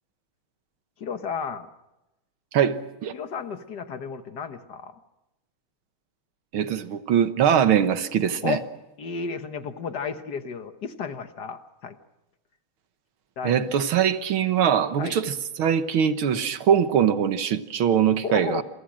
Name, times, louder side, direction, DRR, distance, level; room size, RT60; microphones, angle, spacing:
voice 1, 1.0-1.7 3.1-4.9 8.4-8.6 9.0-12.0 13.4-13.7 15.0-15.2 18.2-18.6, left 6 dB, 55° left, 9 dB, 1.7 m, -33 dB
voice 2, 2.5-3.1 6.5-8.6 13.4-18.6, right 8 dB, 80° right, 10 dB, 2.1 m, -22 dB
27.5 x 23.5 x 6.3 m, 0.96 s
omnidirectional pair, 2.2 m